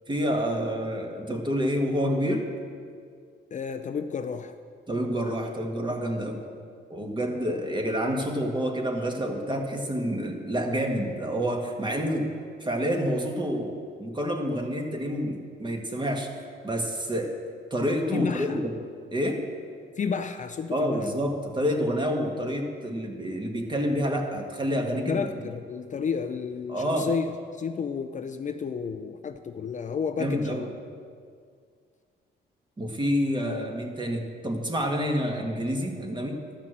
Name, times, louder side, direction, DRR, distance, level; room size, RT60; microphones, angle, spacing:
voice 1, 0.1-2.5 4.9-6.4 6.9-12.3 12.6-16.3 16.6-17.3 17.7-18.8 19.1-19.4 20.7-25.2 26.7-27.1 30.2-30.6 32.8-36.4, equal, 25° right, 2 dB, 1.7 m, -28 dB
voice 2, 3.5-4.5 18.1-18.6 20.0-21.0 25.1-30.7, left 6 dB, 40° left, 7 dB, 0.5 m, -31 dB
12.5 x 5.8 x 7.6 m, 2.1 s
cardioid pair, 90°, 20 cm